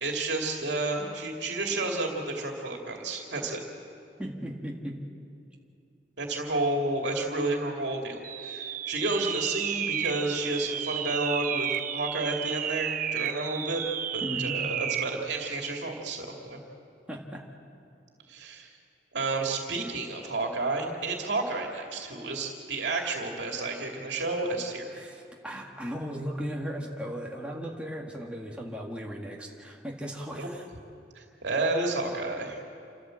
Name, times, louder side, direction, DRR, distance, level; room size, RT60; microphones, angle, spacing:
voice 1, 0.0-3.6 6.2-13.8 14.1-16.6 18.3-18.8 19.1-25.1 30.3-30.5 31.1-32.6, right 2 dB, 75° right, 1 dB, 2.5 m, -31 dB
voice 2, 4.2-5.0 14.2-14.6 17.1-17.4 25.0-30.6, equal, 5° right, -2 dB, 1.9 m, -36 dB
sound 1, 8.2-15.2, right 9 dB, 50° right, 0.7 m, -32 dB
28.5 x 13.0 x 7.7 m, 2.6 s
head